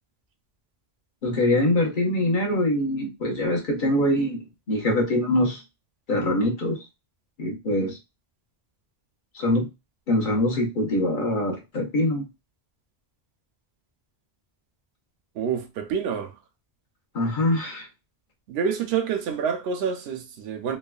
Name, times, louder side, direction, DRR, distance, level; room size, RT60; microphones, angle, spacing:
voice 1, 1.2-4.4 4.7-5.6 6.1-6.8 7.4-8.0 9.3-9.7 10.1-12.2 17.1-17.9, left 1 dB, 55° left, 1.1 m, -23 dB
voice 2, 15.3-16.4 18.5-20.8, right 7 dB, 75° right, 0.8 m, -27 dB
3.1 x 2.2 x 2.3 m
omnidirectional pair, 1.1 m